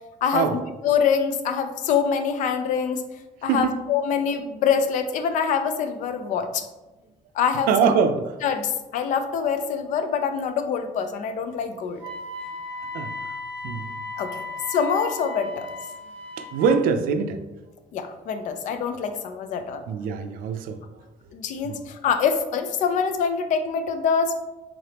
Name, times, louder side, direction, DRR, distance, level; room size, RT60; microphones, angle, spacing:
voice 1, 0.2-3.0 3.4-6.6 7.3-7.9 8.4-12.0 14.2-15.7 17.9-19.8 21.3-24.3, left 6 dB, 60° left, 8 dB, 0.4 m, -25 dB
voice 2, 7.7-8.2 12.9-13.3 13.6-13.9 16.4-17.4 19.9-20.8 21.6-21.8, right 6 dB, 85° right, 9 dB, 0.4 m, -23 dB
Wind instrument woodwind instrument, 12.0-16.8, left 2 dB, 10° left, 1.1 m, -35 dB
3.8 x 3.3 x 2.8 m, 1.1 s
cardioid pair, 165°, 15 cm